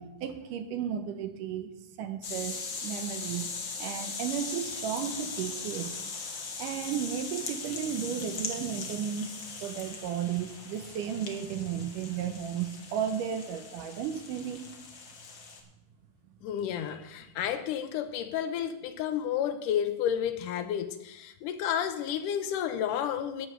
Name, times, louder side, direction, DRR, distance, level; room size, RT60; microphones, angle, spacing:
voice 1, 0.0-1.7 2.0-3.5 3.8-6.0 6.6-9.3 9.6-14.7, right 8 dB, 75° right, 8 dB, 2.3 m, -34 dB
sound 1, 2.2-15.6, left 4 dB, 55° left, 1.3 m, -39 dB
voice 2, 16.4-23.5, left 9 dB, 75° left, 9 dB, 2.2 m, -31 dB
15.5 x 5.3 x 6.5 m, 0.88 s
omnidirectional pair, 3.9 m